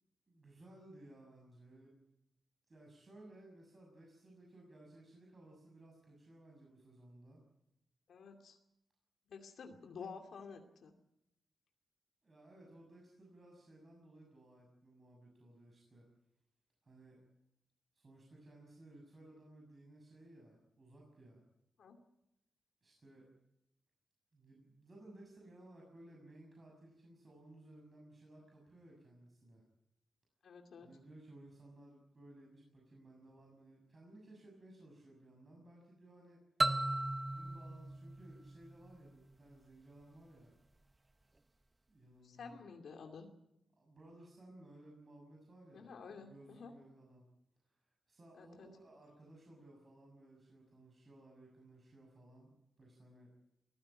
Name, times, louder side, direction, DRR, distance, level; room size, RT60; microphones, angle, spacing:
voice 1, 0.3-2.0 2.7-7.4 12.2-16.1 16.8-17.2 17.9-21.4 22.8-23.3 24.3-29.6 30.8-36.4 37.2-40.5 41.9-42.6 43.8-47.2 47.7-53.3, right 1 dB, 35° right, -1 dB, 6.9 m, -59 dB
voice 2, 8.1-8.6 9.3-10.9 21.8-22.0 30.4-30.9 42.2-43.3 45.7-46.7 48.4-48.7, left 5 dB, 80° left, 4 dB, 2.5 m, -51 dB
sound 1, 36.6-39.3, right 2 dB, 20° right, 0.8 m, -36 dB
23.0 x 15.0 x 8.8 m, 0.82 s
wide cardioid pair, 120°, 0 cm